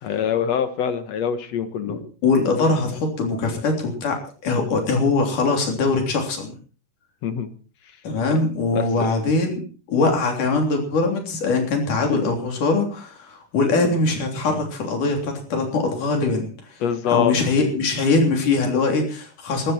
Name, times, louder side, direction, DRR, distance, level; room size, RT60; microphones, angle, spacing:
voice 1, 0.0-2.0 7.2-7.5 8.3-8.4 8.7-9.1 16.8-17.4, left 8 dB, 60° left, 11 dB, 2.3 m, -24 dB
voice 2, 1.8-6.5 8.0-9.6 9.9-16.5 17.1-19.7, left 3 dB, 85° left, 3 dB, 5.0 m, -22 dB
20.5 x 13.5 x 4.4 m, 0.39 s
omnidirectional pair, 3.5 m